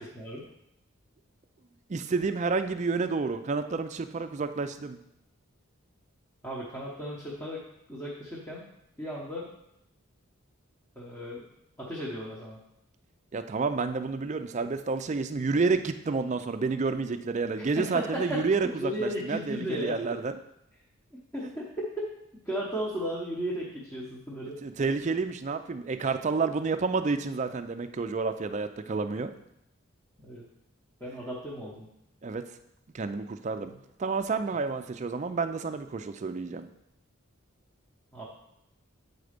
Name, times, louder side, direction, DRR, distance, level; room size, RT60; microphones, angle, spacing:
voice 1, 1.9-5.0 13.3-20.4 24.6-29.3 32.2-32.5 32.9-33.7 34.0-36.7, right 4 dB, 35° right, 9 dB, 0.4 m, -29 dB
voice 2, 6.4-7.6 7.9-8.7 9.0-9.5 10.9-11.4 11.8-12.6 17.6-18.4 18.8-20.0 21.1-22.1 22.4-24.6 30.2-30.4 31.0-31.9 33.6-33.7 38.1-38.2, equal, 10° left, -6 dB, 0.9 m, -35 dB
8.1 x 4.1 x 5.1 m, 0.82 s
head